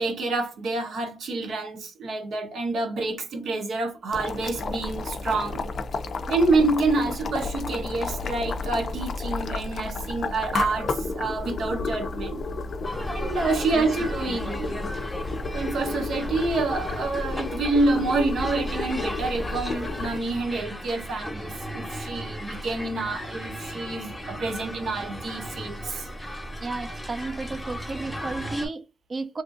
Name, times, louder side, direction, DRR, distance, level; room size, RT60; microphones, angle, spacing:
voice 1, 0.0-5.6 6.3-12.4 13.1-14.8 15.5-26.1, right 3 dB, 80° right, 0.8 m, -27 dB
Boiling, 4.1-20.2, left 3 dB, 60° left, 0.3 m, -32 dB
sound 1, 12.8-28.7, equal, 10° left, 0.8 m, -36 dB
voice 2, 26.6-29.4, right 3 dB, 40° right, 0.4 m, -33 dB
2.8 x 2.5 x 2.4 m
wide cardioid pair, 120°, 0 cm